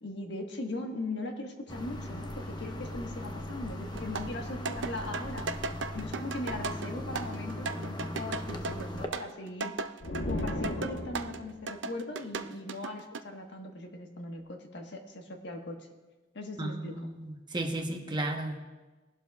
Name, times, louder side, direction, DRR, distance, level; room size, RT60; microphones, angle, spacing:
voice 1, 0.0-5.5 5.9-9.7 10.2-15.8 16.3-17.1, left 2 dB, 65° left, 3 dB, 1.4 m, -39 dB
sound 1, 1.7-9.1, left 1 dB, 25° left, 0.9 m, -39 dB
sound 2, 3.9-11.4 11.7-13.2, right 4 dB, 75° right, 0.5 m, -37 dB
sound 3, 10.0-11.6, left 1 dB, 85° left, 1.1 m, -35 dB
voice 2, 16.6-18.6, right 2 dB, 25° right, 2 dB, 1.1 m, -34 dB
20.5 x 12.0 x 2.4 m, 1.2 s
head